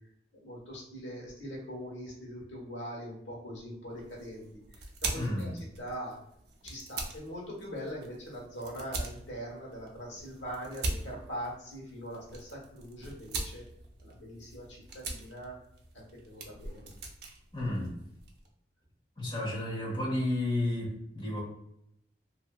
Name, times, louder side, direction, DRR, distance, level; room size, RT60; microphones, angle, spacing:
voice 1, 0.4-4.4 5.0-5.5 5.8-6.2 6.6-13.6 14.0-15.6 15.9-16.9, equal, 85° left, -3 dB, 1.2 m, -42 dB
sound 1, 3.9-18.5, right 2 dB, 60° right, 0.5 m, -42 dB
voice 2, 5.1-5.6 17.5-17.9 19.2-21.4, left 1 dB, 25° left, -5 dB, 1.1 m, -32 dB
2.6 x 2.6 x 2.3 m, 0.75 s
head